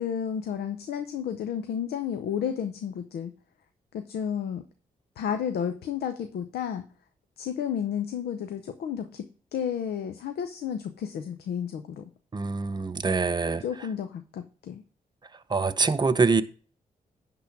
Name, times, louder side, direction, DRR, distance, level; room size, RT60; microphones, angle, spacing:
voice 1, 0.0-3.3 3.9-4.6 5.2-6.8 7.4-12.0 13.6-14.8, left 8 dB, 85° left, 8 dB, 0.7 m, -32 dB
voice 2, 12.3-13.6 15.5-16.4, right 4 dB, 25° right, 10 dB, 0.7 m, -24 dB
10.5 x 3.8 x 5.8 m, 0.39 s
cardioid pair, 65°, 16 cm